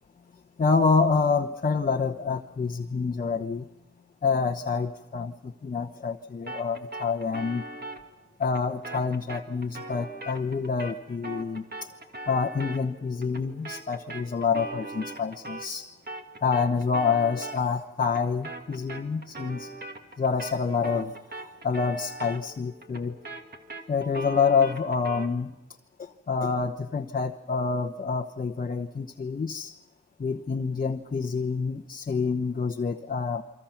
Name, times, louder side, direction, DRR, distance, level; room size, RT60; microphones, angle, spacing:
voice 1, 0.6-3.6 4.2-7.6 8.4-11.9 12.3-15.9 16.4-19.7 20.2-23.2 23.9-25.5 26.0-29.7 30.2-33.4, left 5 dB, 30° left, 5 dB, 1.0 m, -27 dB
sound 1, 6.5-15.8 16.1-25.4, right 2 dB, 35° right, 2.2 m, -41 dB
29.0 x 24.5 x 5.9 m, 0.95 s
wide cardioid pair, 115°, 29 cm